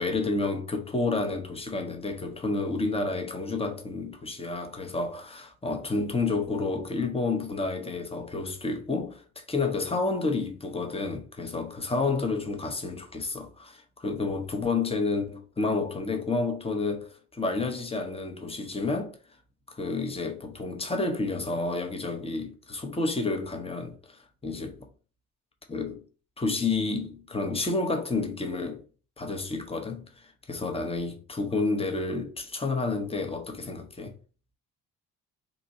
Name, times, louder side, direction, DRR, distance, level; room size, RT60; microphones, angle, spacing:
voice 1, 0.0-19.2 19.7-24.9 25.7-26.0 26.4-28.8 29.2-34.2, left 3 dB, 15° left, 0.9 m, -30 dB
3.9 x 2.6 x 3.8 m
figure-of-eight pair, 50°, 45 cm